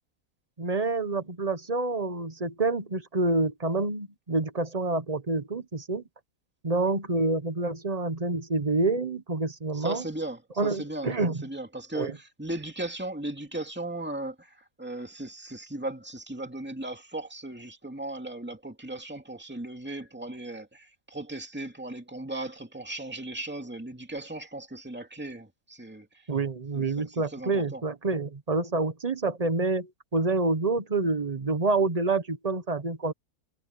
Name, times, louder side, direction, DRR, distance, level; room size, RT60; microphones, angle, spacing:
voice 1, 0.6-6.0 6.6-10.0 10.6-11.4 11.9-12.1 26.3-33.1, right 3 dB, 25° right, 1.2 m, -27 dB
voice 2, 9.7-11.1 11.4-26.3 26.7-27.8, right 2 dB, 5° right, 2.5 m, -37 dB
omnidirectional pair, 1.6 m